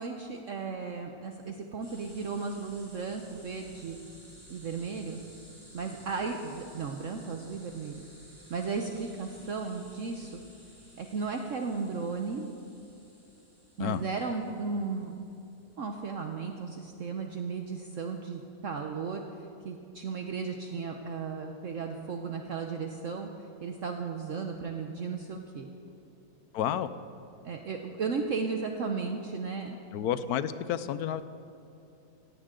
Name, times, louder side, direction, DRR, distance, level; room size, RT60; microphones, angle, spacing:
voice 1, 0.0-4.0 4.5-5.2 5.7-8.0 8.5-10.4 11.0-12.5 13.8-15.2 15.8-19.2 19.6-23.3 23.6-25.7 27.4-29.8, right 5 dB, 55° right, 4 dB, 1.1 m, -35 dB
sound 1, 1.8-16.3, equal, 10° right, 4.1 m, -55 dB
voice 2, 26.5-26.9 29.9-31.2, left 10 dB, 70° left, 13 dB, 1.1 m, -30 dB
17.0 x 16.5 x 3.8 m, 2.8 s
omnidirectional pair, 1.7 m